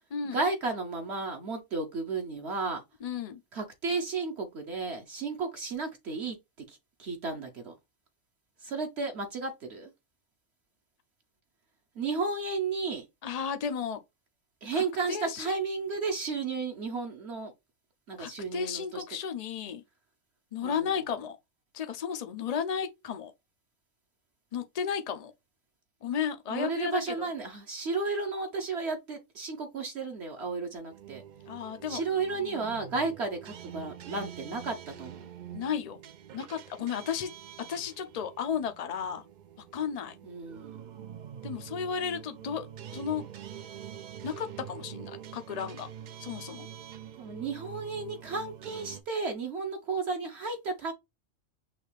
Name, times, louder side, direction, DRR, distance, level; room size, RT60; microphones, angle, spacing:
voice 1, 0.3-2.8 3.5-6.4 6.7-7.7 8.6-9.9 12.0-13.0 14.6-17.5 18.1-19.0 20.6-20.9 26.5-31.2 31.9-35.2 40.2-40.7 47.2-50.9, right 4 dB, 60° right, 1.0 m, -33 dB
voice 2, 3.0-3.4 13.2-14.0 14.7-15.6 18.2-19.8 20.5-21.4 21.7-23.3 24.5-25.3 26.0-27.3 31.5-32.0 35.5-36.0 36.3-37.3 37.7-39.2 39.7-40.1 41.4-42.7 42.9-43.2 44.2-45.9 46.2-46.7, left 7 dB, 75° left, 0.3 m, -33 dB
sound 1, 30.9-49.0, right 9 dB, 85° right, 0.4 m, -45 dB
6.0 x 2.4 x 3.2 m
omnidirectional pair, 1.3 m